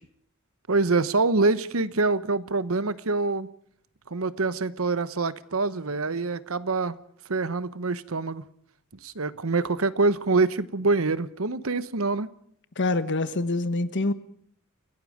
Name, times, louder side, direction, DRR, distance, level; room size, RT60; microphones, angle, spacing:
voice 1, 0.7-3.5 4.1-7.0 7.3-8.4 9.0-12.3, right 3 dB, 80° right, 15 dB, 1.1 m, -25 dB
voice 2, 12.8-14.1, left 2 dB, 60° left, 12 dB, 1.3 m, -25 dB
29.5 x 17.5 x 5.1 m, 0.64 s
head